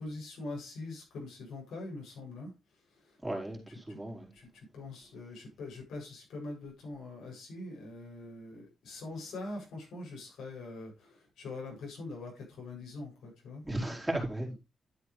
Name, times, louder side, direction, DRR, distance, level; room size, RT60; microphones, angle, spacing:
voice 1, 0.0-2.5 3.0-3.2 3.9-4.0 4.3-13.6, left 2 dB, 85° left, 7.7 m, -43 dB
voice 2, 3.2-4.3 13.6-14.5, right 1 dB, 10° right, 4.5 m, -35 dB
12.0 x 8.9 x 3.4 m
cardioid pair, 105°, 0 cm